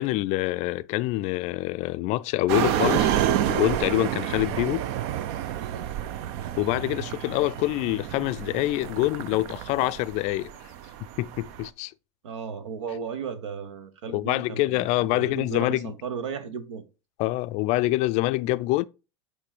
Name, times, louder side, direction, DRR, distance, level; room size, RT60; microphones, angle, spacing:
voice 1, 0.0-3.2 3.5-4.8 6.6-10.5 11.2-11.9 14.1-15.9 17.2-18.8, left 18 dB, 50° left, 0.4 m, -26 dB
sound 1, 2.5-11.7, right 11 dB, 60° right, 0.6 m, -29 dB
voice 2, 5.7-6.0 12.2-16.8, right 6 dB, 80° right, 1.2 m, -35 dB
8.3 x 3.2 x 4.9 m
hypercardioid pair, 90°, 15 cm